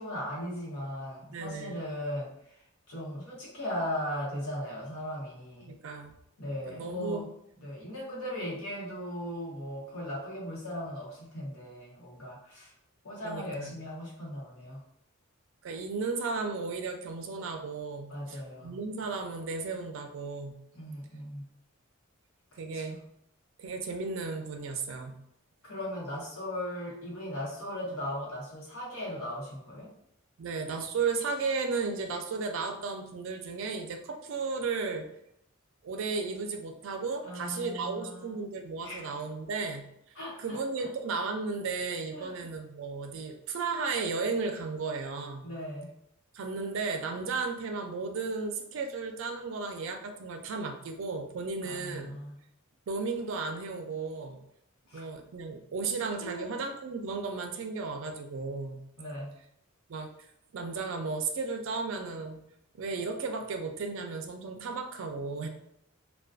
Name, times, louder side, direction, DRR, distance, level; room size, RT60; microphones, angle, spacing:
voice 1, 0.0-2.6 2.9-5.8 6.4-7.3 7.6-12.7 13.0-14.8 18.1-18.8 20.7-21.5 22.7-23.0 25.6-29.9 37.2-38.3 38.8-39.1 40.1-40.9 42.1-42.4 45.4-45.9 51.6-52.4 54.9-55.1 56.2-56.6 59.0-59.3, equal, 80° left, -4 dB, 0.9 m, -38 dB
voice 2, 1.3-1.8 5.6-6.1 6.7-7.2 13.2-13.7 15.6-20.6 22.6-23.0 23.6-25.2 30.4-35.1 35.8-39.9 40.4-45.5 46.3-52.1 52.9-54.4 54.9-58.8 59.9-60.1 60.5-62.4 62.7-65.5, right 4 dB, 65° right, 4 dB, 0.4 m, -34 dB
2.4 x 2.2 x 2.3 m, 0.75 s
head